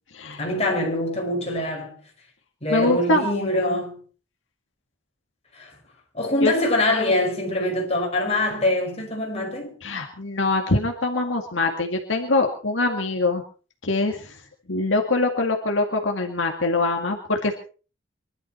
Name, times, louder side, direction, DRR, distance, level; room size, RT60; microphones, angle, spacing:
voice 1, 0.4-2.0 2.6-4.0 5.5-5.7 6.1-9.7, left 1 dB, 35° left, 5.5 m, -24 dB
voice 2, 2.7-3.8 6.4-6.5 9.8-13.4 13.8-14.4 14.7-17.6, left 2 dB, 75° left, 2.1 m, -23 dB
24.0 x 12.5 x 4.4 m
head